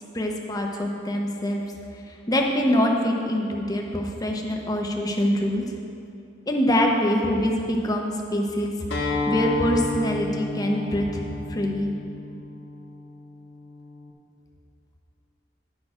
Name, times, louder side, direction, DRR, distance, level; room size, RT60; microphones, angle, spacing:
voice 1, 0.1-1.6 2.3-5.6 6.5-11.2 11.5-11.9, equal, 20° left, 1 dB, 0.9 m, -24 dB
Acoustic guitar, 8.9-14.1, left 3 dB, 70° left, 1.5 m, -31 dB
11.0 x 6.4 x 4.9 m, 2.6 s
head